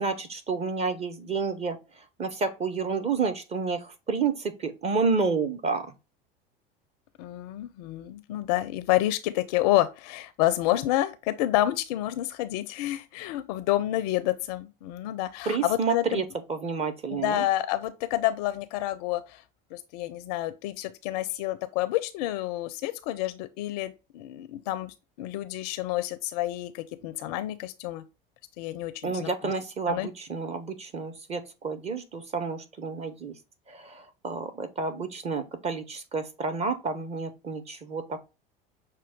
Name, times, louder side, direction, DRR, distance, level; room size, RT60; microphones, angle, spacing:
voice 1, 0.0-1.8 2.2-5.9 15.5-17.5 29.0-33.3 33.7-38.3, right 4 dB, 20° right, 0.7 m, -30 dB
voice 2, 7.2-16.2 17.1-19.4 19.7-28.0 28.6-29.3 29.9-30.1, left 14 dB, 45° left, 0.4 m, -29 dB
6.0 x 2.2 x 3.5 m
figure-of-eight pair, 75°, 29 cm